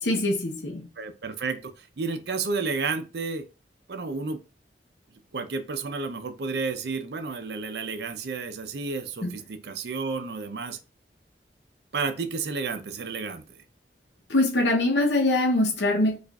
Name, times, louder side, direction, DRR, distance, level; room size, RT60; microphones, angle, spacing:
voice 1, 0.0-0.9 9.2-9.3 14.3-16.2, left 2 dB, 80° left, 0.8 m, -23 dB
voice 2, 1.0-3.5 3.9-4.4 5.3-10.8 11.9-13.6, right 4 dB, 65° right, 0.5 m, -31 dB
4.6 x 2.5 x 2.3 m
head